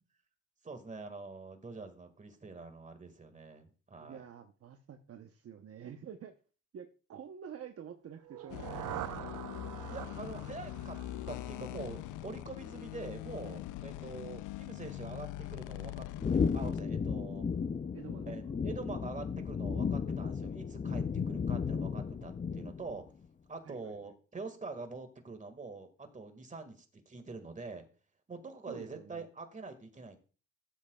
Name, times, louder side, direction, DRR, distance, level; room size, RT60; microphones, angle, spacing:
voice 1, 0.6-4.2 9.9-11.0 11.3-16.1 16.3-17.5 18.2-23.1 23.5-27.8 28.3-30.2, right 3 dB, 25° right, 6 dB, 1.9 m, -45 dB
voice 2, 3.9-6.3 6.7-8.9 17.9-18.5 23.6-24.1 28.7-29.3, right 8 dB, 50° right, 6 dB, 0.9 m, -48 dB
sound 1, 8.2-12.2, right 13 dB, 80° right, 0.7 m, -44 dB
sound 2, 8.5-16.8, left 14 dB, 80° left, 0.5 m, -43 dB
sound 3, 16.2-23.0, left 6 dB, 25° left, 0.5 m, -34 dB
14.5 x 7.6 x 2.3 m, 0.37 s
cardioid pair, 90°, 30 cm